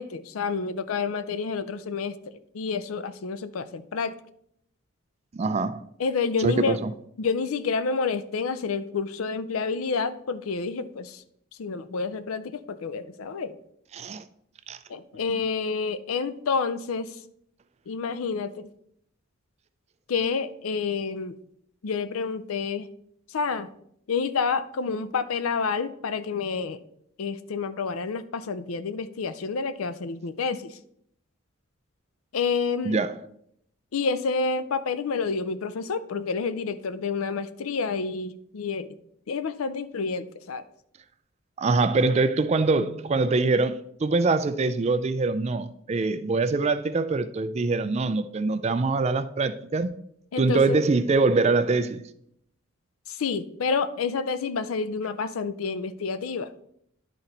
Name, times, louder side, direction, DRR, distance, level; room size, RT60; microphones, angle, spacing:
voice 1, 0.0-2.2 2.5-4.2 6.0-6.8 7.2-11.2 11.6-13.6 14.9-17.2 17.9-18.7 20.1-21.4 21.8-22.9 23.3-23.7 24.1-26.8 27.2-30.8 32.3-33.0 33.9-39.0 39.3-40.6 50.3-50.8 53.1-56.5, left 5 dB, 85° left, 0.5 m, -29 dB
voice 2, 5.3-5.8 6.4-6.9 13.9-14.2 14.7-14.8 32.8-33.1 41.6-49.9 50.4-52.0, right 3 dB, 30° right, 0.3 m, -24 dB
10.5 x 4.2 x 3.9 m
head